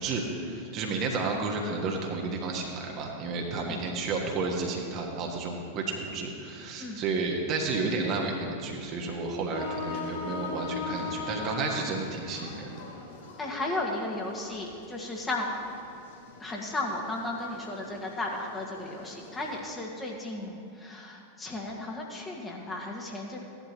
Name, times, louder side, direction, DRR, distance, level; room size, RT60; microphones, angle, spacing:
voice 1, 0.0-12.7, right 3 dB, 35° right, 0 dB, 1.5 m, -31 dB
sound 1, 9.5-19.6, left 4 dB, 55° left, 2.1 m, -40 dB
voice 2, 13.4-15.5 16.4-23.4, left 2 dB, 15° left, -2 dB, 1.7 m, -35 dB
16.0 x 11.0 x 3.0 m, 2.6 s
figure-of-eight pair, 90°, 0 cm